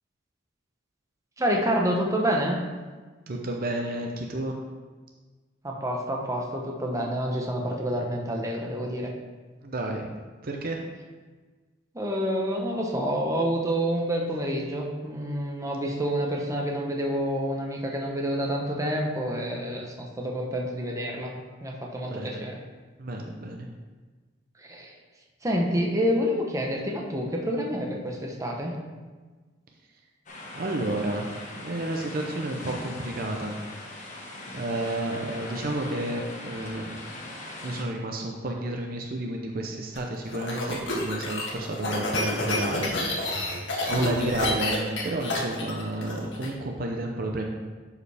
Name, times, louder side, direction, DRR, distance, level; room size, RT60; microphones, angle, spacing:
voice 1, 1.4-2.6 5.6-9.1 11.9-22.6 24.6-24.9 25.4-28.7, equal, 15° right, 0 dB, 1.0 m, -28 dB
voice 2, 3.3-4.5 9.6-10.1 10.4-10.8 22.0-22.4 23.0-23.7 30.5-33.6 33.9-34.0 34.5-37.0 37.6-42.9 43.9-47.4, right 1 dB, 50° right, 1 dB, 0.7 m, -31 dB
sound 1, 30.3-37.8, left 2 dB, 40° left, 1.3 m, -40 dB
sound 2, 40.0-46.5, left 2 dB, 70° left, 1.6 m, -29 dB
11.0 x 4.9 x 3.5 m, 1.4 s
head